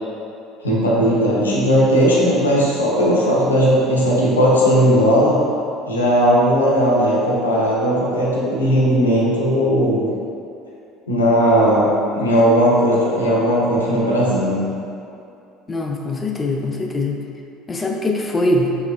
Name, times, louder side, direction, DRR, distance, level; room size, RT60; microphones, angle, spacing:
voice 1, 0.6-5.4 5.9-10.1 11.1-11.9 12.1-14.7, equal, 85° left, -6 dB, 0.6 m, -17 dB
voice 2, 15.7-17.2 17.7-18.8, left 1 dB, 25° left, 2 dB, 0.4 m, -22 dB
4.1 x 3.0 x 2.3 m, 2.6 s
figure-of-eight pair, 65°, 0 cm